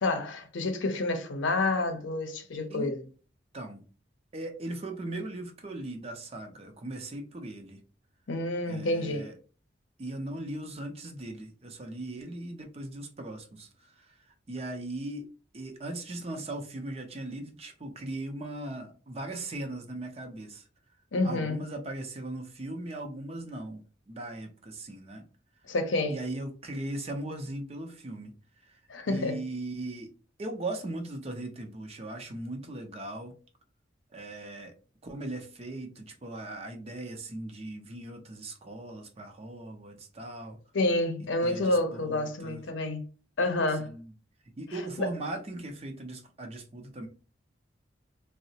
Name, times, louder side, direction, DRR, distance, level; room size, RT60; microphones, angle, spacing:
voice 1, 0.0-3.0 8.3-9.3 21.1-21.6 25.7-26.2 28.9-29.4 40.7-43.1 43.4-43.9 45.0-45.1, left 2 dB, 85° left, 0.6 m, -29 dB
voice 2, 4.3-7.8 8.7-9.3 10.0-14.1 14.5-15.3 15.5-20.6 21.2-25.3 26.1-28.3 28.7-28.8 29.1-30.1 30.4-33.3 34.1-34.7 35.0-40.6 41.4-42.6 43.8-44.1 44.6-47.1, right 2 dB, 35° right, 0.5 m, -39 dB
3.8 x 2.0 x 2.7 m
head